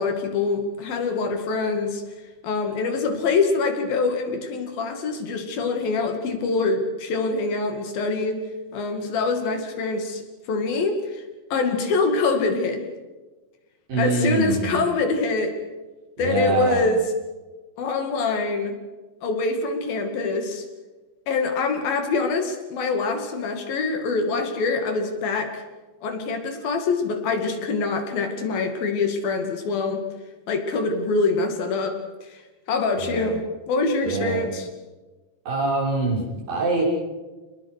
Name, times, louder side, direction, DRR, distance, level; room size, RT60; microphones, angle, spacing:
voice 1, 0.0-2.0 2.4-8.4 8.7-10.2 10.5-11.2 11.5-12.8 14.0-15.5 16.2-17.0 17.8-18.8 19.2-20.7 21.3-25.6 26.0-30.0 30.5-32.4 32.7-34.7, left 3 dB, 70° left, 6 dB, 4.1 m, -24 dB
voice 2, 13.9-14.8 16.2-16.8 32.9-33.4 34.0-34.5 35.5-36.8, right 3 dB, 65° right, -4 dB, 8.2 m, -24 dB
28.0 x 20.0 x 6.6 m, 1.2 s
omnidirectional pair, 4.3 m